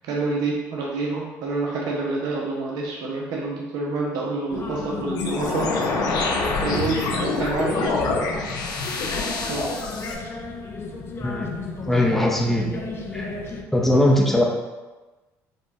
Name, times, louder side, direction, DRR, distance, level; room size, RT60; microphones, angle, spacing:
voice 1, 0.1-5.7 6.6-8.2 9.5-9.7, right 3 dB, 75° right, -2 dB, 0.9 m, -27 dB
sound 1, 4.5-13.6, left 3 dB, 35° left, 0.7 m, -33 dB
sound 2, 5.1-10.1, left 3 dB, 70° left, 0.8 m, -26 dB
voice 2, 11.9-12.7 13.1-13.2 13.7-14.4, left 1 dB, 5° left, -2 dB, 0.8 m, -19 dB
5.3 x 2.4 x 4.0 m, 1.2 s
supercardioid pair, 85°, 7 cm